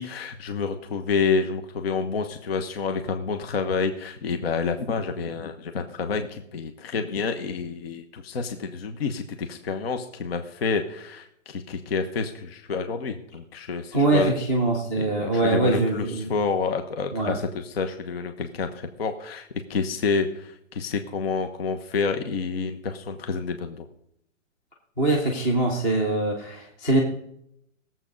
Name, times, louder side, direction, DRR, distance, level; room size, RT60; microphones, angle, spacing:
voice 1, 0.0-14.3 15.0-23.9, left 5 dB, 50° left, 6 dB, 1.2 m, -28 dB
voice 2, 13.9-16.3 17.1-17.4 25.0-27.0, right 2 dB, 5° left, -2 dB, 0.6 m, -23 dB
18.5 x 7.6 x 5.2 m, 0.75 s
hypercardioid pair, 175°, 39 cm